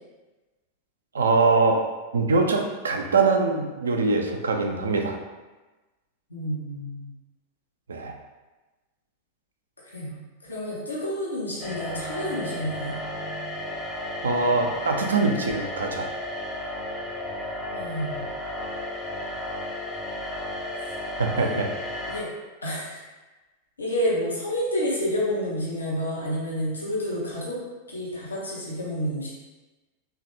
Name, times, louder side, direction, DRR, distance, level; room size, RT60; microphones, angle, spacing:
voice 1, 1.1-1.8 2.1-5.2 7.9-8.1 14.2-16.1 21.2-21.7, right 3 dB, 70° right, 3 dB, 0.4 m, -23 dB
voice 2, 6.3-7.1 9.8-12.9 17.7-18.3 21.4-21.6 22.1-22.3 22.6-23.0 23.8-27.6 27.9-29.3, equal, 75° left, -6 dB, 0.7 m, -29 dB
sound 1, 11.6-22.2, left 1 dB, 20° left, 0.6 m, -33 dB
3.2 x 2.4 x 2.7 m, 1.2 s
figure-of-eight pair, 90°, 0 cm